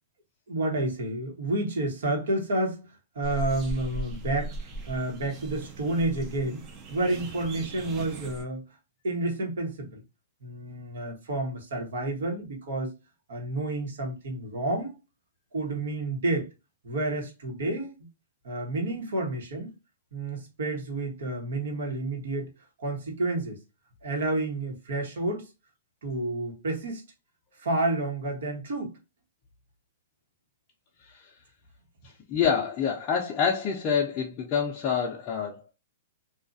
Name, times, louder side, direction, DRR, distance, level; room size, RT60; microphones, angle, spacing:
voice 1, 0.5-6.6 6.9-8.6 9.0-10.0 10.4-12.9 13.3-15.0 15.5-16.5 16.8-17.9 18.4-19.7 20.1-22.5 22.8-23.6 24.0-25.5 26.0-27.0 27.6-29.0, right 2 dB, 75° right, 1.2 m, -30 dB
sound 1, 3.2-8.4, right 2 dB, 30° right, 0.6 m, -38 dB
voice 2, 32.3-35.7, left 7 dB, 30° left, 0.5 m, -27 dB
2.7 x 2.4 x 2.5 m
hypercardioid pair, 150°, 0 cm